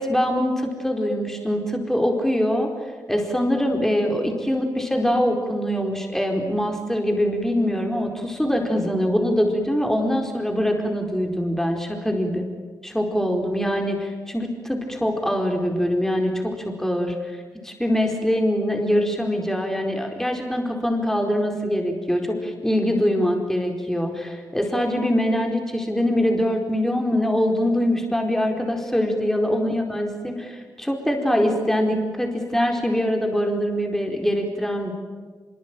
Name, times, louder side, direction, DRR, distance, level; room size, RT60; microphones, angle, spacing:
voice 1, 0.0-2.7 3.1-12.5 12.8-17.1 17.6-34.9, equal, 5° left, 2 dB, 4.5 m, -23 dB
24.5 x 22.5 x 9.1 m, 1.5 s
cardioid pair, 70°, 7 cm